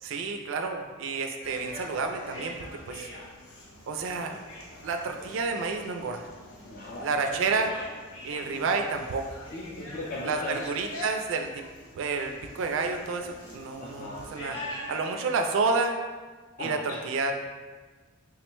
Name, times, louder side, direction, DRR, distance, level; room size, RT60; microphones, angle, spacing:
voice 1, 0.0-3.1 3.9-4.4 4.8-6.3 7.0-7.7 8.2-9.3 10.2-11.7 11.9-14.6 14.9-16.0 16.6-17.3, right 4 dB, 60° right, 4 dB, 0.3 m, -30 dB
sound 1, 1.4-15.1, left 1 dB, 80° left, 0.8 m, -44 dB
voice 2, 6.7-7.1 9.5-10.6 13.8-14.3 16.6-17.0, left 2 dB, 40° left, -6 dB, 0.5 m, -37 dB
3.7 x 2.1 x 4.4 m, 1.4 s
head